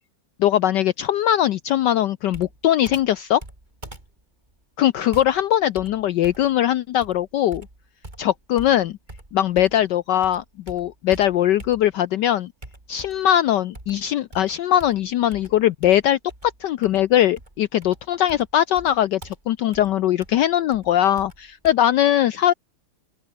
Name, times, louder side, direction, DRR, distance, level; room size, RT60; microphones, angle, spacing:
voice 1, 0.4-3.4 4.8-7.7 8.2-9.0 9.3-12.5 12.9-22.5, left 11 dB, 70° left, 1.2 m, -20 dB
Computer keyboard, 2.3-9.9 10.2-12.1 12.6-13.4 13.7-21.7, right 2 dB, 20° right, 4.2 m, -44 dB
open air
omnidirectional pair, 2.2 m